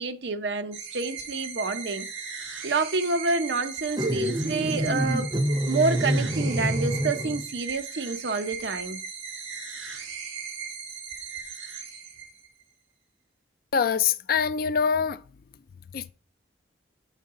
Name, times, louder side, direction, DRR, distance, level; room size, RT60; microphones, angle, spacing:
voice 1, 0.0-2.1 2.6-5.3 5.7-9.0, right 3 dB, 60° right, 0.7 m, -28 dB
sound 1, 0.7-12.6, right 6 dB, 90° right, 1.5 m, -38 dB
sound 2, 4.0-7.5, right 1 dB, 20° right, 0.5 m, -27 dB
voice 2, 13.7-15.2 15.9-16.1, left 6 dB, 50° left, 0.4 m, -24 dB
8.2 x 4.7 x 3.7 m
head